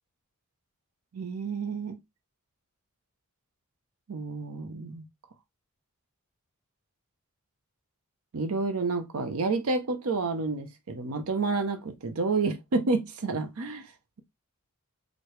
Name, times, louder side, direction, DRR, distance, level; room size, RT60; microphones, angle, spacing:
voice 1, 1.1-2.0 4.1-5.0 8.3-13.9, right 3 dB, 70° right, 0.6 m, -29 dB
4.6 x 2.1 x 3.0 m
head